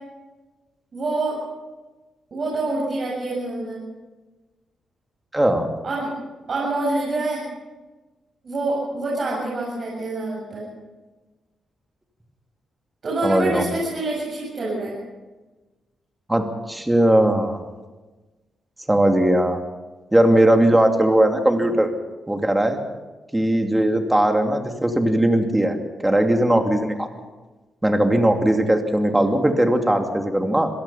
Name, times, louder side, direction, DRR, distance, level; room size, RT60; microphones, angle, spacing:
voice 1, 0.9-1.4 2.3-3.8 5.8-6.1 6.5-7.4 8.4-10.6 13.0-14.9, right 2 dB, 45° right, -5 dB, 7.6 m, -26 dB
voice 2, 5.3-5.7 13.2-13.7 16.3-17.6 18.9-19.6 20.1-21.9 22.3-22.8 23.3-25.8 26.0-27.1 27.8-30.7, right 1 dB, 10° right, 4 dB, 2.6 m, -19 dB
26.5 x 17.5 x 5.7 m, 1.2 s
cardioid pair, 115°, 0 cm